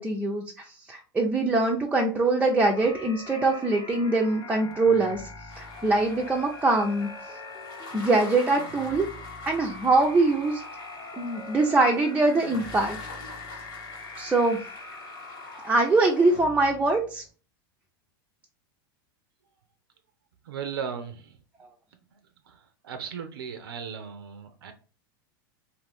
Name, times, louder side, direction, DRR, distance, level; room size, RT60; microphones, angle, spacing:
voice 1, 0.0-5.2 5.6-7.1 7.9-9.1 9.5-10.6 11.2-13.0 14.2-14.6 15.6-17.2, right 2 dB, 10° right, 0.4 m, -23 dB
sound 1, 2.7-17.3, left 2 dB, 35° left, 0.8 m, -42 dB
sound 2, 5.5-16.4, left 2 dB, 75° left, 1.5 m, -45 dB
voice 2, 20.5-21.4 22.5-22.6 22.8-24.7, right 7 dB, 85° right, 0.4 m, -36 dB
2.5 x 2.5 x 3.3 m
hypercardioid pair, 105°, 12 cm